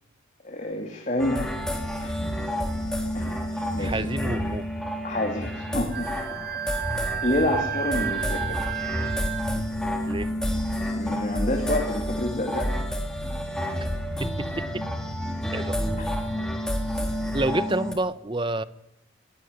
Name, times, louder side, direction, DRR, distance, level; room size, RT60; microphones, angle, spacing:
voice 1, 0.4-1.5 2.0-2.5 3.1-3.4 3.7-4.0 5.0-6.1 7.2-8.6 10.9-12.7 16.0-16.1, left 1 dB, 35° left, 3.0 m, -28 dB
sound 1, 1.2-17.9, equal, 5° left, 3.5 m, -29 dB
voice 2, 3.8-4.7 10.1-10.3 14.2-14.8 15.5-15.8 17.3-18.6, right 2 dB, 25° right, 0.9 m, -28 dB
Wind instrument woodwind instrument, 5.9-9.6, right 11 dB, 50° right, 1.3 m, -32 dB
21.0 x 17.0 x 9.4 m
head